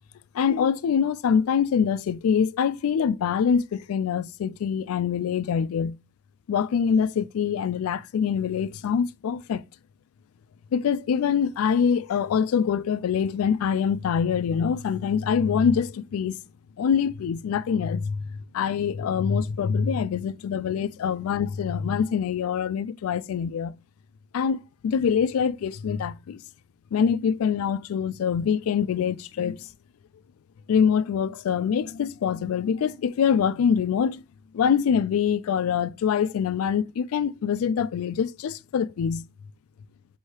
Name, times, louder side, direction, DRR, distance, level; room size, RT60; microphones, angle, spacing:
voice 1, 0.3-6.0 6.5-9.6 10.7-16.4 16.8-18.2 18.5-23.7 24.3-26.4 26.9-29.7 30.7-34.2 34.5-39.3, left 7 dB, 85° left, 0.3 m, -24 dB
3.2 x 2.7 x 4.3 m
head